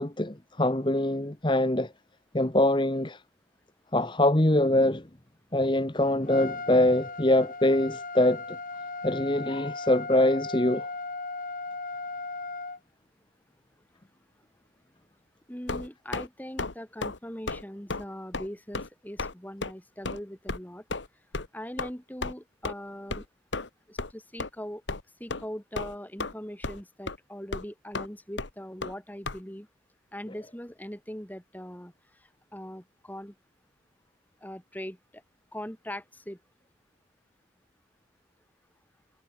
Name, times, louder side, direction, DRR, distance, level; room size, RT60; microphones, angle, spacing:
voice 1, 0.0-1.9 2.3-3.2 3.9-5.1 5.5-8.6 9.0-10.9, left 1 dB, 25° left, 1.3 m, -24 dB
Trumpet, 6.3-12.8, left 3 dB, 45° left, 1.8 m, -37 dB
voice 2, 15.5-20.8 21.5-23.2 23.9-24.8 25.2-29.7 30.1-31.9 32.5-33.3 34.4-35.0 35.5-36.4, equal, 10° left, 2.8 m, -41 dB
sound 1, 15.7-16.3 16.6-16.7 17.0-17.2 17.5-17.6 17.9-18.0 18.3-18.5 18.7-18.9 19.2-19.3 19.6-19.7 20.0-20.2 20.5-20.6 20.9-21.1 21.3-21.5 21.8-21.9 22.2-22.3 22.6-22.7 23.1-23.2 23.5-23.7 24.0-24.1 24.4-24.5 24.9-25.0 25.3-25.4 25.7-26.3 26.6-26.8 27.1-27.2 27.5-27.6 27.9-28.1 28.4-28.5 28.8-28.9 29.2-29.4, left 3 dB, 85° left, 1.6 m, -33 dB
head